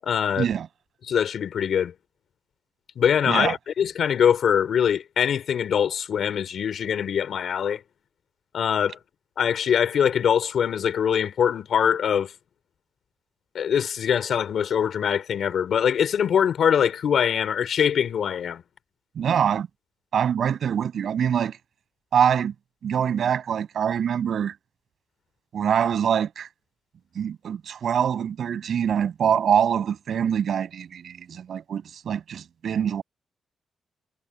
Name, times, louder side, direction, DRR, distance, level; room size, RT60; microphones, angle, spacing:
voice 1, 0.0-0.5 1.0-1.9 3.0-7.8 8.5-9.0 9.4-12.3 13.5-18.6, left 8 dB, 70° left, 3.7 m, -23 dB
voice 2, 19.2-19.7 20.1-21.6 22.1-22.5 22.8-24.6 25.5-26.5 27.1-33.0, right 8 dB, 65° right, 7.9 m, -24 dB
cardioid pair, 105°, 0 cm